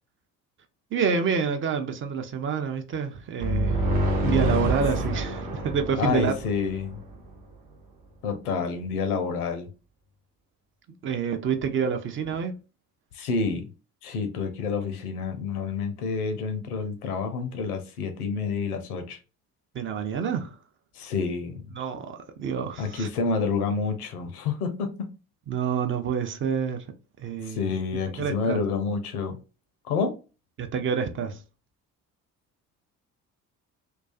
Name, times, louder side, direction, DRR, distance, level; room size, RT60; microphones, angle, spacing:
voice 1, 0.9-3.9 4.2-6.3 11.0-12.5 19.7-20.6 21.7-23.1 25.5-26.9 27.2-28.6 30.6-31.4, right 6 dB, 30° right, 0.4 m, -28 dB
sound 1, 3.4-7.1, right 1 dB, 50° right, 0.9 m, -27 dB
voice 2, 6.0-7.0 8.2-9.7 13.1-13.7 14.0-19.2 21.0-21.6 22.8-25.1 27.4-29.4 29.9-30.1, left 5 dB, 80° left, 0.6 m, -28 dB
2.3 x 2.3 x 2.4 m
figure-of-eight pair, 45°, 45 cm